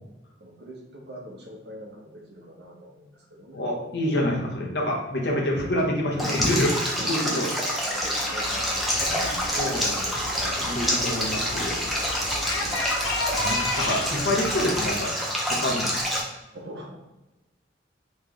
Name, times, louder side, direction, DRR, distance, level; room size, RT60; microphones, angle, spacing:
voice 1, 0.4-3.7 7.7-9.3 10.4-10.8 16.5-17.0, right 1 dB, 60° right, 0 dB, 0.8 m, -43 dB
voice 2, 3.5-7.5 9.5-10.0 10.6-11.8 13.3-15.2 15.5-16.0, left 1 dB, 65° left, -1 dB, 0.9 m, -27 dB
Stream, 6.2-16.2, equal, ahead, 0.6 m, -27 dB
sound 1, 8.0-14.4, left 2 dB, 25° right, 1.2 m, -44 dB
sound 2, 8.4-15.0, left 2 dB, 85° left, 0.6 m, -33 dB
3.2 x 3.1 x 3.7 m, 1.0 s
head